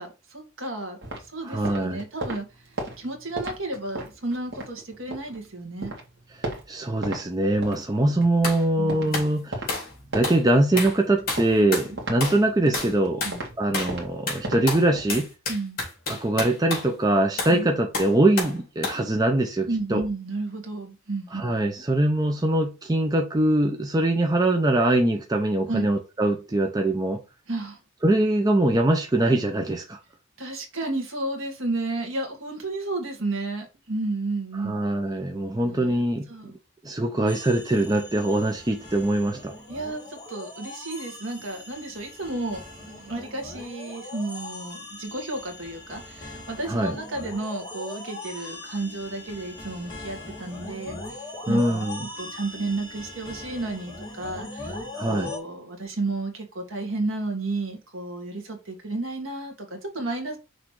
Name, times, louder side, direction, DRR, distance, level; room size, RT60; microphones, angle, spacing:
voice 1, 0.0-5.9 8.8-9.3 13.2-13.4 15.5-15.8 17.5-17.7 19.7-21.4 25.7-25.9 27.5-27.8 30.4-34.8 35.6-36.0 36.3-36.5 39.7-54.8 55.1-60.4, right 2 dB, 70° right, 1.8 m, -32 dB
sound 1, 1.0-5.4 5.7-7.2 7.5-15.3, right 1 dB, 55° right, 1.9 m, -37 dB
voice 2, 1.4-2.0 6.7-9.7 10.1-13.2 13.6-15.3 16.1-20.0 21.3-27.2 28.0-30.0 34.6-36.5 36.8-39.5 46.7-46.9 51.5-52.0 54.9-55.3, right 1 dB, 20° right, 0.7 m, -23 dB
sound 2, 8.4-8.6 9.1-9.3 9.7-9.9 10.2-10.4 10.8-11.0 11.3-11.9 12.2-12.4 12.7-12.9 13.2-13.4 13.7-14.0 14.3-16.9 17.4-17.6 17.9-18.6 18.8-19.0, left 3 dB, 45° left, 3.0 m, -30 dB
sound 3, 37.3-55.4, left 2 dB, 20° left, 2.2 m, -40 dB
6.1 x 3.3 x 4.7 m
head